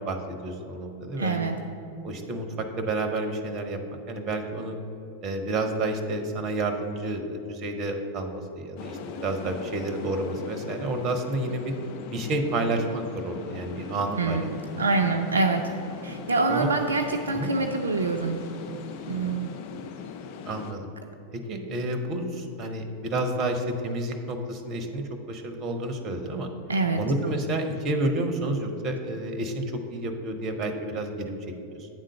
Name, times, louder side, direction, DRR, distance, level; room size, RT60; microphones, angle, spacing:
voice 1, 0.1-1.5 2.0-3.8 4.1-4.8 5.2-11.7 12.1-14.5 16.5-16.7 17.3-17.5 20.4-20.9 21.3-26.5 27.0-29.6 29.9-31.5, right 2 dB, 35° right, 6 dB, 0.8 m, -30 dB
voice 2, 1.2-1.6 14.2-15.6 16.0-18.4 19.1-19.5 26.7-27.0, right 3 dB, 70° right, 3 dB, 0.4 m, -25 dB
sound 1, 8.8-20.7, left 7 dB, 45° left, 0.5 m, -40 dB
8.8 x 3.8 x 6.5 m, 2.8 s
figure-of-eight pair, 90°, 0 cm